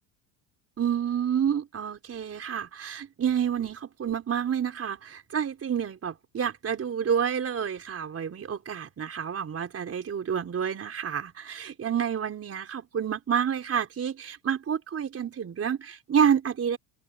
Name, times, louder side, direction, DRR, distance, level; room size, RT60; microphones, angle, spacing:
voice 1, 0.8-16.8, right 8 dB, 30° right, 4.5 m, -29 dB
supercardioid pair, 110°, 48 cm